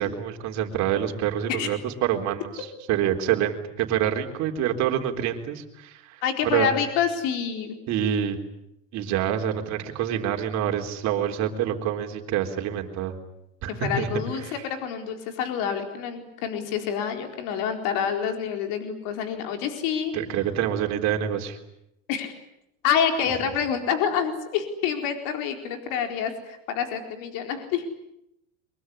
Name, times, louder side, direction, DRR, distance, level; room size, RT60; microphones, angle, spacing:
voice 1, 0.0-6.2 6.5-6.7 7.9-8.4 8.9-13.2 13.6-14.1 14.5-14.6 20.1-21.6, right 10 dB, 45° right, 4 dB, 3.8 m, -26 dB
voice 2, 6.2-7.8 13.7-20.1 22.1-22.3 22.8-27.9, left 7 dB, 55° left, 6 dB, 4.4 m, -27 dB
24.0 x 23.0 x 10.0 m, 0.82 s
supercardioid pair, 140°, 38 cm